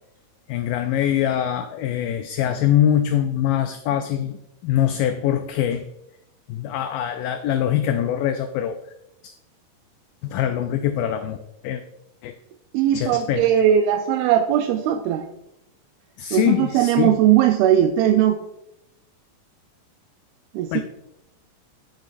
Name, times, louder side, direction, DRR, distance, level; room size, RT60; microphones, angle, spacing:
voice 1, 0.5-4.4 4.6-5.9 6.5-8.8 9.2-9.3 10.2-11.4 11.6-11.8 12.2-12.3 12.9-13.4 16.2-17.2 20.7-20.8, left 10 dB, 80° left, 8 dB, 2.1 m, -23 dB
voice 2, 12.7-15.3 16.3-18.4 20.5-20.8, right 10 dB, 90° right, 4 dB, 2.5 m, -19 dB
17.0 x 6.4 x 2.5 m, 0.85 s
omnidirectional pair, 4.3 m